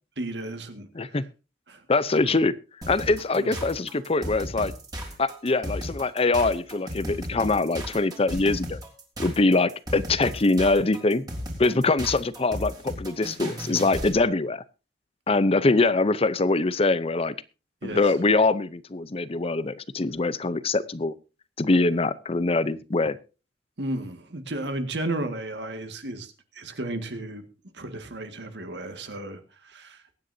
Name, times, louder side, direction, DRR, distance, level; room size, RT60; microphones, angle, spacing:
voice 1, 0.2-0.9 1.7-1.8 2.1-2.4 3.4-3.6 17.8-18.2 23.8-27.4 27.7-30.0, right 1 dB, 70° right, 7 dB, 1.9 m, -34 dB
voice 2, 1.9-2.5 2.9-4.7 5.2-8.8 9.2-11.3 11.6-14.6 15.3-17.3 17.8-21.1 21.6-23.2, left 3 dB, 35° left, 16 dB, 0.6 m, -23 dB
sound 1, 2.8-14.2, equal, 20° right, 3.5 m, -35 dB
22.5 x 9.6 x 2.7 m, 0.32 s
head